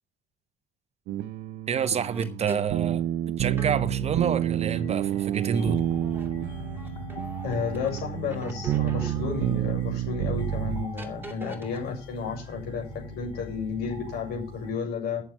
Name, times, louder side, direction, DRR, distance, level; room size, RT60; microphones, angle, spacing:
sound 1, 1.1-10.8, right 12 dB, 85° right, 0.7 m, -29 dB
voice 1, 1.7-3.0 3.4-5.8, right 7 dB, 40° right, 0.9 m, -28 dB
sound 2, 1.8-2.8 3.6-8.0 8.3-10.0 11.0-11.8 12.2-12.8, right 2 dB, 10° right, 2.4 m, -44 dB
sound 3, 4.8-14.7, left 2 dB, 30° left, 6.1 m, -42 dB
voice 2, 7.4-12.8 13.1-15.2, left 5 dB, 70° left, 6.7 m, -32 dB
9.3 x 7.3 x 8.4 m
cardioid pair, 110°, 17 cm